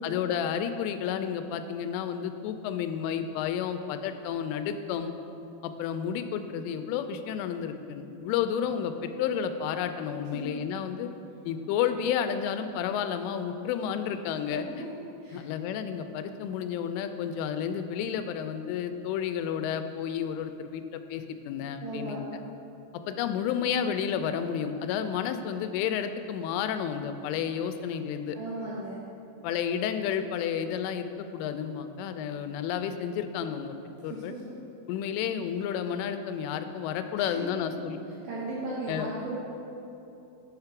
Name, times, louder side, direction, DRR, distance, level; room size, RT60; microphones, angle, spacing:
voice 1, 0.0-5.1 5.6-11.1 11.5-14.7 15.3-22.4 22.9-28.4 29.4-33.8 34.0-34.3 34.9-38.0 38.9-39.1, left 8 dB, 90° left, 9 dB, 3.1 m, -31 dB
voice 2, 21.8-22.2 28.3-29.0 34.0-34.4 37.2-37.3 37.8-37.9 38.2-39.4, right 2 dB, 75° right, -7 dB, 3.3 m, -36 dB
8.0 x 6.7 x 5.8 m, 2.9 s
omnidirectional pair, 5.5 m